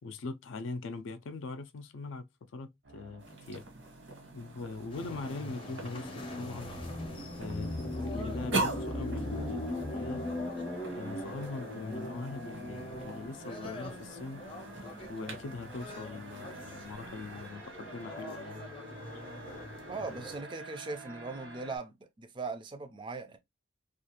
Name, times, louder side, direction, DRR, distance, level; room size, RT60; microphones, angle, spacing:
voice 1, 0.0-2.2 2.5-3.6 4.3-6.7 7.4-10.3 10.9-14.4 15.1-19.0, left 3 dB, 80° left, 0.4 m, -41 dB
sound 1, 2.8-21.8, right 2 dB, 60° right, 0.6 m, -50 dB
sound 2, 3.2-17.5, right 2 dB, 85° right, 1.2 m, -43 dB
sound 3, 4.9-20.4, left 1 dB, 25° left, 0.6 m, -40 dB
voice 2, 19.9-23.4, right 3 dB, 25° right, 0.3 m, -39 dB
2.4 x 2.3 x 2.8 m
head